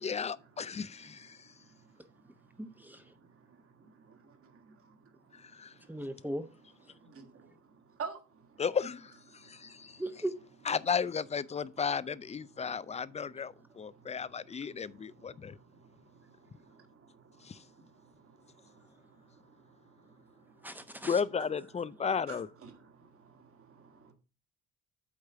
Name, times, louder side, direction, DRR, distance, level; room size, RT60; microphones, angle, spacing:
voice 1, 0.0-1.5 5.3-5.7 8.6-10.0 10.7-15.6 17.4-17.6 21.1-22.5, left 6 dB, 20° left, 0.4 m, -34 dB
voice 2, 0.7-2.6 3.1-3.7 4.8-6.0 6.9-8.6 9.3-10.0 12.5-21.1 22.3-24.1, right 5 dB, 50° right, 1.9 m, -53 dB
voice 3, 2.6-3.1 5.9-6.4 10.0-10.4 20.6-21.2, right 1 dB, 5° right, 0.9 m, -38 dB
8.6 x 3.2 x 6.5 m
cardioid pair, 90°, 30 cm